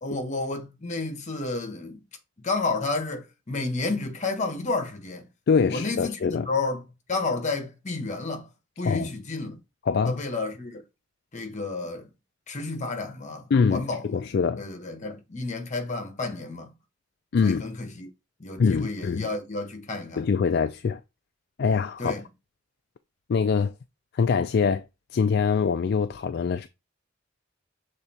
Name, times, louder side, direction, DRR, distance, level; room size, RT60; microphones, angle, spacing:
voice 1, 0.0-2.0 2.4-5.3 5.7-6.8 7.1-8.5 8.8-9.6 10.0-10.8 11.3-12.1 12.5-14.2 14.6-16.7 17.4-18.1 18.4-20.3 22.0-22.2, left 3 dB, 40° left, 1.3 m, -31 dB
voice 2, 5.5-6.5 8.8-9.1 9.9-10.2 13.5-14.6 17.3-17.6 18.6-19.3 20.2-21.0 21.6-22.2 23.3-23.7 24.1-24.9 25.1-26.7, left 5 dB, 55° left, 0.4 m, -24 dB
6.7 x 3.5 x 4.2 m
head